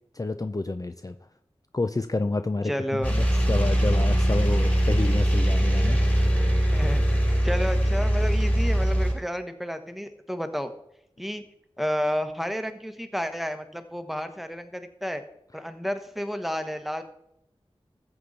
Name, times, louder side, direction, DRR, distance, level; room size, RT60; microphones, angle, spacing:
voice 1, 0.1-1.2 1.7-6.0, left 2 dB, 35° left, 9 dB, 0.6 m, -29 dB
voice 2, 2.6-3.1 6.7-7.2 7.4-10.7 11.2-11.4 11.8-15.2 15.5-17.0, equal, ahead, 8 dB, 1.3 m, -31 dB
sound 1, 3.0-9.1, equal, 15° left, 5.2 m, -22 dB
14.0 x 7.9 x 4.2 m, 0.80 s
cardioid pair, 40°, 11 cm